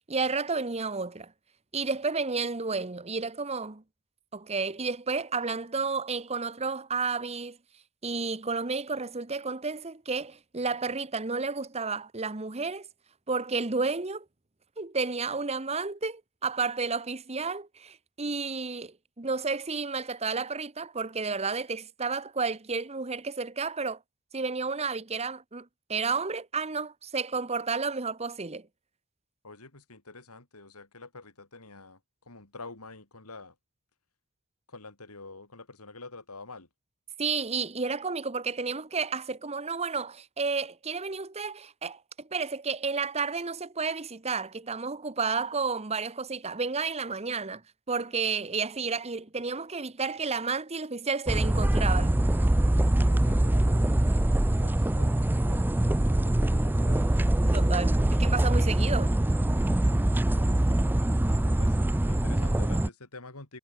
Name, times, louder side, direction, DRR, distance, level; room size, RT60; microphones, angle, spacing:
voice 1, 0.1-1.3 1.7-3.8 4.3-7.6 8.0-12.9 13.3-14.2 14.8-24.0 24.3-28.7 37.2-47.6 47.9-52.2 57.4-59.2, right 4 dB, 30° right, 1.1 m, -31 dB
voice 2, 29.4-32.0 32.3-33.6 34.7-36.7 53.0-53.9 54.6-57.1 60.1-60.6 61.4-61.8 62.1-63.6, left 3 dB, 90° left, 4.1 m, -47 dB
sound 1, 51.3-62.9, right 1 dB, 10° right, 0.4 m, -24 dB
head